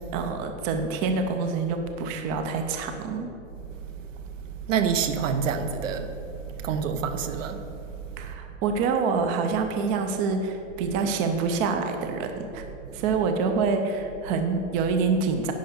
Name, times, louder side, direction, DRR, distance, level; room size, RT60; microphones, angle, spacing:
voice 1, 0.1-3.3 8.2-12.6 12.9-15.5, right 4 dB, 20° right, 6 dB, 0.5 m, -26 dB
voice 2, 3.9-6.1 6.5-7.7 10.9-11.0 12.7-13.1, right 6 dB, 80° right, 8 dB, 1.0 m, -28 dB
10.5 x 5.1 x 6.5 m, 2.7 s
hypercardioid pair, 150°, 38 cm